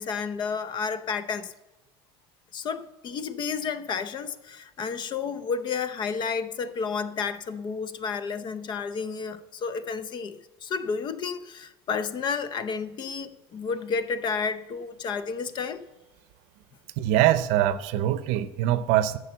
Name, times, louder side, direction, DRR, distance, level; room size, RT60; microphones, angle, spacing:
voice 1, 0.0-1.5 2.5-15.8, left 5 dB, 35° left, 0.7 m, -31 dB
voice 2, 17.0-19.2, right 12 dB, 65° right, 0.7 m, -23 dB
11.0 x 6.8 x 6.8 m
supercardioid pair, 125°, 13 cm